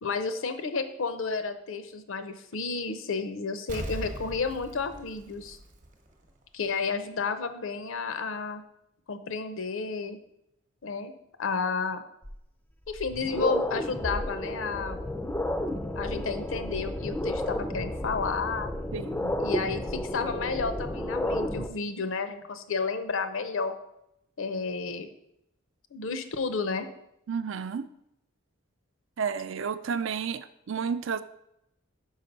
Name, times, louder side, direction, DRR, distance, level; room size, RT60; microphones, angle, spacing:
voice 1, 0.0-5.6 6.5-8.6 9.1-10.2 10.8-11.1 11.4-12.0 12.9-15.0 16.0-18.7 19.4-23.7 24.4-25.1 25.9-26.9, left 4 dB, 70° left, 10 dB, 0.6 m, -31 dB
Explosion, 3.7-6.3 6.6-6.7, right 1 dB, 40° right, 0.9 m, -39 dB
sound 1, 12.2-12.3 12.9-21.7, left 1 dB, 10° left, 0.4 m, -32 dB
voice 2, 18.9-19.3 27.3-27.8 29.2-31.2, right 6 dB, 60° right, 12 dB, 0.4 m, -31 dB
5.6 x 5.0 x 5.2 m, 0.80 s
head